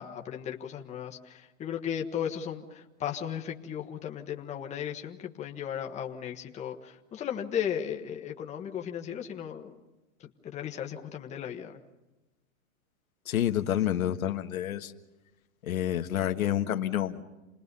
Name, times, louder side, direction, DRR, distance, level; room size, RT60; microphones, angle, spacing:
voice 1, 0.0-9.8 10.4-11.8, left 9 dB, 15° left, 1.4 m, -36 dB
voice 2, 13.3-14.9 15.6-17.2, left 11 dB, 90° left, 1.6 m, -28 dB
28.5 x 20.5 x 5.5 m
hypercardioid pair, 150°, 41 cm